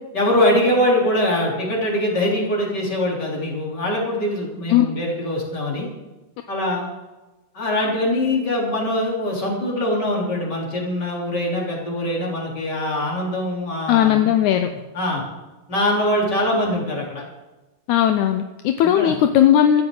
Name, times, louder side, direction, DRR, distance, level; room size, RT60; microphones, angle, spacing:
voice 1, 0.1-5.9 6.5-6.9 7.5-14.3 14.7-15.2 15.7-17.2 18.9-19.1, left 1 dB, 35° left, -3 dB, 4.1 m, -23 dB
voice 2, 13.9-14.7 17.9-19.8, left 11 dB, 80° left, 7 dB, 2.1 m, -17 dB
17.0 x 13.0 x 3.9 m, 1.1 s
omnidirectional pair, 3.5 m